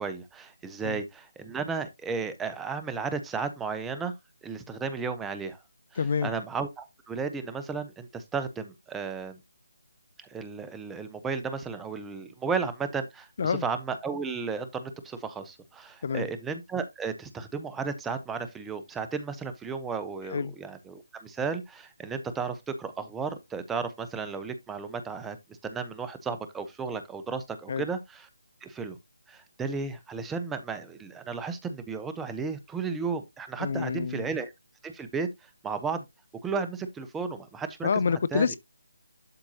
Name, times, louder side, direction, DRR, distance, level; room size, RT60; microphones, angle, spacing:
voice 1, 0.0-4.1 4.4-5.6 5.9-9.4 10.2-25.4 25.6-28.3 28.6-29.0 29.3-34.5 34.8-36.0 36.4-37.9 38.3-38.5, right 5 dB, 5° right, 1.0 m, -34 dB
voice 2, 6.0-6.3 13.4-13.7 16.0-16.3 20.2-20.5 27.7-27.9 33.6-34.3 37.8-38.6, left 6 dB, 50° left, 0.4 m, -27 dB
11.5 x 4.4 x 2.8 m
figure-of-eight pair, 155°, 0 cm